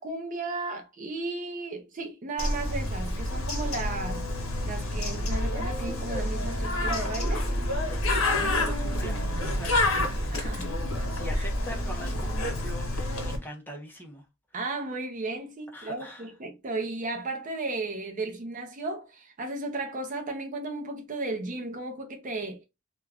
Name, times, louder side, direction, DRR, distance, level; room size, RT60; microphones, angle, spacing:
voice 1, 0.0-4.2 4.7-7.5 10.3-10.7 11.4-11.5 14.5-22.6, right 2 dB, 40° right, 0.5 m, -34 dB
Bird, 2.4-13.4, left 1 dB, 75° left, 0.8 m, -28 dB
voice 2, 7.8-10.3 10.6-10.8 11.1-14.3 15.7-16.3, equal, 10° left, 0.5 m, -42 dB
sound 1, 8.3-11.4, right 6 dB, 85° right, 0.4 m, -43 dB
2.3 x 2.2 x 3.3 m
head